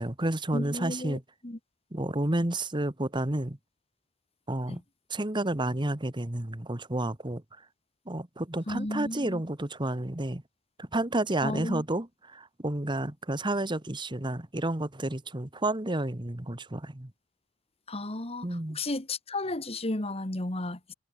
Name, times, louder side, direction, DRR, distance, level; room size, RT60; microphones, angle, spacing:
voice 1, 0.0-1.2 1.9-3.6 4.5-4.8 5.1-7.4 8.1-10.4 10.8-17.1 18.4-18.8, right 1 dB, 20° right, 1.3 m, -31 dB
voice 2, 0.5-1.6 4.7-4.8 8.7-9.4 11.4-11.8 17.9-20.9, left 2 dB, 25° left, 1.6 m, -34 dB
head